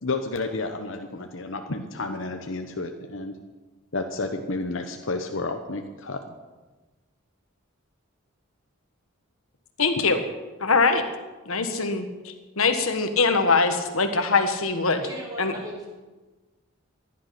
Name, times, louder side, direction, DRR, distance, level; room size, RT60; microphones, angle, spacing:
voice 1, 0.0-3.3 3.9-6.2 10.0-10.1, left 3 dB, 60° left, 5 dB, 1.0 m, -31 dB
voice 2, 9.8-10.2 10.6-11.0 11.5-15.0 15.4-15.5, left 4 dB, 80° left, 7 dB, 1.5 m, -22 dB
voice 3, 15.0-15.9, right 1 dB, 15° right, -3 dB, 3.5 m, -37 dB
15.5 x 11.0 x 5.8 m, 1.2 s
head